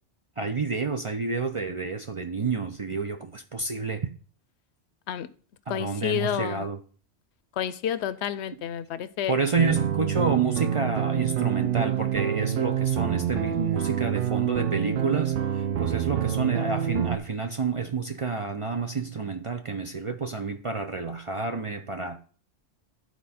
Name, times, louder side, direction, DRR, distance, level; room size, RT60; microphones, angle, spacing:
voice 1, 0.4-4.1 5.7-6.8 9.3-22.2, right 4 dB, 45° right, 0.4 m, -29 dB
voice 2, 5.7-6.7 7.6-9.3, left 10 dB, 75° left, 0.8 m, -30 dB
sound 1, 9.6-17.2, right 10 dB, 60° right, 0.8 m, -27 dB
11.0 x 4.3 x 4.2 m
omnidirectional pair, 1.2 m